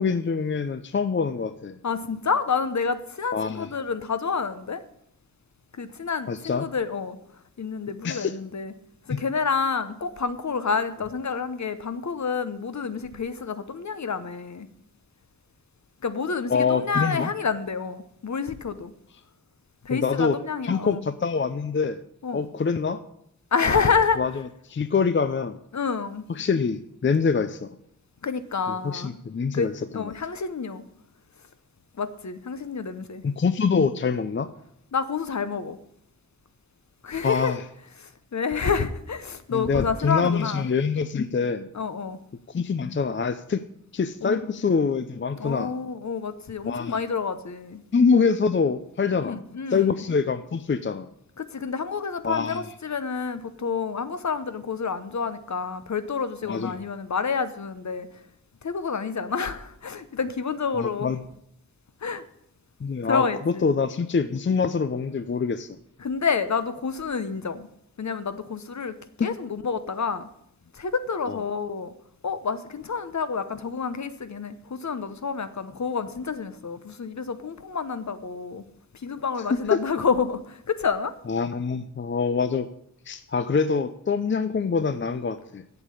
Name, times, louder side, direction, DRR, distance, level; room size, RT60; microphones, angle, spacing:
voice 1, 0.0-1.8 3.3-3.7 6.3-6.7 8.0-8.3 9.1-9.2 16.5-17.3 19.9-20.4 20.6-22.0 22.3-23.0 23.6-24.3 24.7-25.6 26.3-27.8 28.7-30.1 33.2-34.5 37.2-37.6 39.5-41.7 42.5-43.6 43.9-45.7 46.7-47.0 47.9-49.4 49.7-51.1 52.2-52.6 56.5-56.8 60.7-61.2 62.8-65.8 69.2-69.3 71.3-71.4 79.7-79.8 81.3-82.7 83.1-85.6, left 5 dB, 35° left, 11 dB, 0.5 m, -25 dB
voice 2, 1.8-4.8 5.8-7.2 7.6-8.7 9.1-14.7 16.0-18.9 19.8-21.0 22.2-22.5 23.5-24.2 25.7-26.3 28.2-29.1 29.5-30.8 32.0-33.2 34.9-35.8 37.0-37.6 38.0-40.7 41.7-42.2 44.2-44.4 45.4-47.8 49.2-50.0 51.4-58.2 58.6-61.1 62.0-62.2 63.0-63.6 66.0-67.7 68.0-70.3 70.7-71.9 72.2-78.6 78.9-81.1, left 5 dB, 55° left, 12 dB, 0.9 m, -28 dB
8.0 x 7.5 x 8.4 m, 0.74 s
wide cardioid pair, 65°, 35 cm